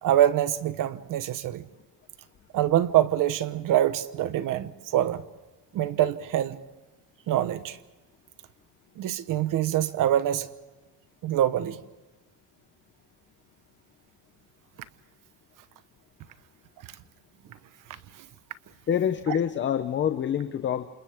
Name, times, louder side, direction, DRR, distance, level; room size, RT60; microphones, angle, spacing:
voice 1, 0.0-1.7 2.5-5.2 5.7-6.6 7.3-7.8 9.0-10.5 11.2-11.8 19.3-19.4, right 12 dB, 50° right, 1.1 m, -25 dB
voice 2, 18.9-20.9, left 9 dB, 30° left, 0.7 m, -26 dB
29.0 x 27.5 x 3.6 m
cardioid pair, 170°, 40 cm